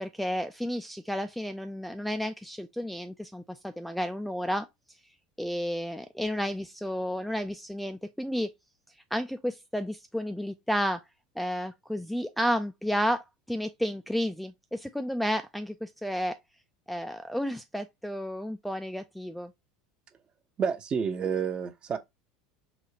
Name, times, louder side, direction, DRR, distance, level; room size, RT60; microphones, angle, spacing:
voice 1, 0.0-4.7 5.4-8.5 9.1-11.0 11.4-16.3 16.9-19.5, equal, ahead, 0.3 m, -32 dB
voice 2, 20.6-22.0, right 6 dB, 30° right, 0.7 m, -29 dB
4.1 x 2.3 x 2.8 m
supercardioid pair, 105°, 3 cm